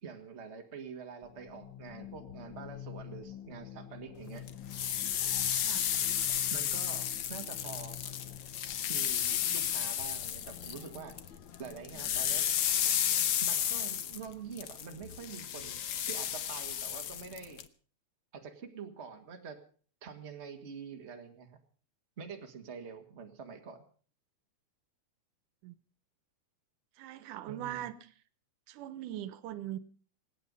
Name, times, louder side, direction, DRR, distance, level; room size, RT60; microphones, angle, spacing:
voice 1, 0.0-4.4 6.5-8.0 8.9-11.2 11.6-12.5 13.4-17.6 18.3-19.6 20.0-21.6 22.2-23.8 27.5-27.9, right 6 dB, 25° right, 4 dB, 1.8 m, -46 dB
sound 1, 1.2-13.9, left 9 dB, 90° left, 0.9 m, -49 dB
sound 2, 4.5-11.3 11.5-17.6, left 10 dB, 70° left, 1.3 m, -32 dB
voice 2, 27.0-27.9 28.7-29.8, right 12 dB, 85° right, 14 dB, 2.5 m, -40 dB
26.5 x 9.4 x 5.4 m, 0.42 s
omnidirectional pair, 3.5 m